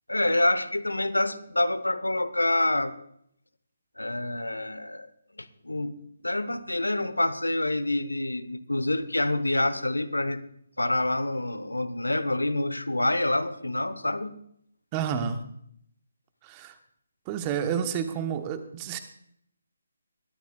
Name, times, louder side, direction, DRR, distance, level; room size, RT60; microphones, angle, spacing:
voice 1, 0.1-2.9 4.0-5.1 5.4-10.4 10.8-14.4, left 1 dB, 80° left, 14 dB, 0.9 m, -27 dB
voice 2, 14.9-15.4 16.4-16.8 17.3-19.0, right 8 dB, 20° right, 9 dB, 1.0 m, -30 dB
21.0 x 13.0 x 2.3 m, 0.70 s
figure-of-eight pair, 145°, 0 cm